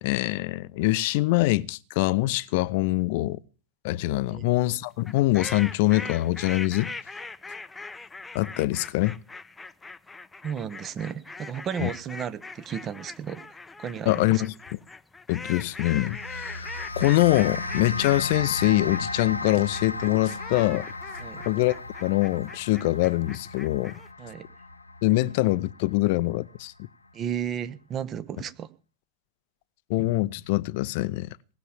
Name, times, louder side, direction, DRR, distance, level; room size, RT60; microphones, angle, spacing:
voice 1, 0.0-3.4 3.8-6.9 8.3-9.2 11.8-11.9 14.1-14.5 15.3-16.7 17.0-20.8 21.5-21.8 22.0-24.0 25.0-26.7 29.9-31.3, left 18 dB, 50° left, 0.7 m, -24 dB
sound 1, 5.0-24.1, left 3 dB, 10° left, 0.7 m, -41 dB
voice 2, 10.4-14.4 21.2-21.5 24.2-24.5 27.1-28.7, right 8 dB, 30° right, 1.0 m, -34 dB
sound 2, 16.0-26.6, left 2 dB, 80° left, 0.9 m, -36 dB
19.0 x 7.0 x 8.8 m
figure-of-eight pair, 90°, 0 cm